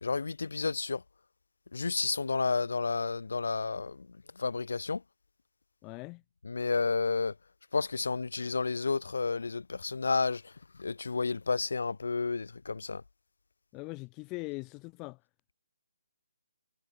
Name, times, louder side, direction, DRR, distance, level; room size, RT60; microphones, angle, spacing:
voice 1, 0.0-1.0 1.7-5.0 6.4-7.3 7.7-10.5 10.8-13.0, left 4 dB, 75° left, 1.9 m, -31 dB
voice 2, 5.8-6.2 13.7-15.2, left 27 dB, 15° left, 0.7 m, -41 dB
hypercardioid pair, 160°, 0 cm